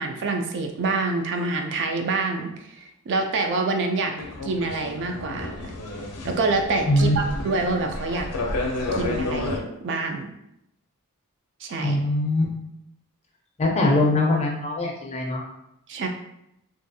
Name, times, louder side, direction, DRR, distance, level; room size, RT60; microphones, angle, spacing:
voice 1, 0.0-2.7 3.1-4.1 4.4-5.5 6.2-8.3 8.9-10.3 11.6-12.0 15.9-16.1, right 3 dB, 55° right, 4 dB, 0.3 m, -26 dB
sound 1, 4.2-9.6, left 2 dB, 85° left, 0.5 m, -31 dB
voice 2, 11.8-12.5 13.6-15.4, left 1 dB, 30° left, 0 dB, 0.4 m, -22 dB
2.5 x 2.3 x 2.6 m, 0.82 s
head